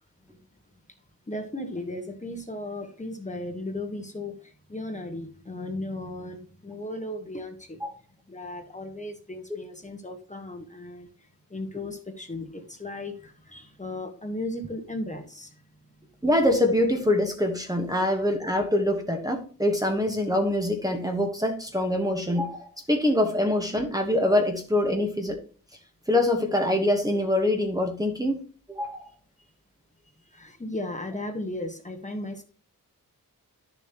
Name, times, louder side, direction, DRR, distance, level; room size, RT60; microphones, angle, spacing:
voice 1, 1.3-7.8 8.3-15.6 17.9-18.0 30.2-32.4, left 1 dB, 20° left, 1.3 m, -36 dB
voice 2, 16.2-25.4 26.1-28.4 28.7-29.1, left 1 dB, 10° right, 1.3 m, -24 dB
11.5 x 7.0 x 3.0 m
wide cardioid pair, 145°, 35 cm